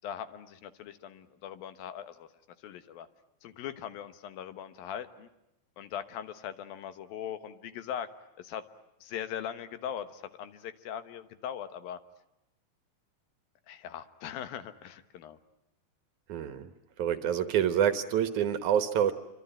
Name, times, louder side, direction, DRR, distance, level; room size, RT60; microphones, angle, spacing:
voice 1, 0.0-2.3 2.6-3.1 3.4-5.3 5.8-8.1 8.4-8.6 9.0-12.0 13.7-15.4, left 9 dB, 75° left, 11 dB, 3.0 m, -40 dB
voice 2, 16.3-16.7 17.0-19.1, right 9 dB, 65° right, 10 dB, 2.3 m, -27 dB
27.0 x 25.0 x 9.0 m, 0.89 s
omnidirectional pair, 4.2 m